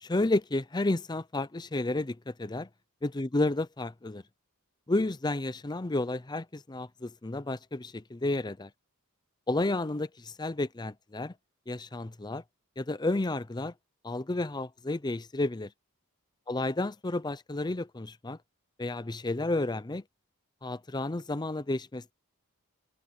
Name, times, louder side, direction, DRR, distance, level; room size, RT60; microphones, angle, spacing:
voice 1, 0.0-2.7 3.0-4.2 4.9-8.7 9.5-11.3 11.7-12.4 12.8-13.7 14.0-15.7 16.5-18.4 18.8-20.0 20.6-22.1, left 2 dB, 20° left, 0.6 m, -31 dB
head